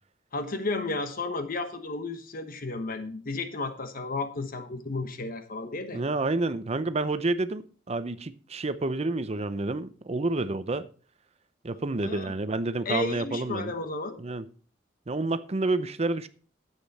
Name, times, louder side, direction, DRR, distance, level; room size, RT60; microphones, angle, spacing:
voice 1, 0.3-6.0 12.0-12.3 12.8-14.2, left 3 dB, 50° left, 1.1 m, -33 dB
voice 2, 5.9-7.6 7.9-10.9 11.6-13.7 14.2-14.4 15.1-16.3, right 2 dB, 35° right, 0.6 m, -29 dB
10.0 x 8.3 x 4.1 m
head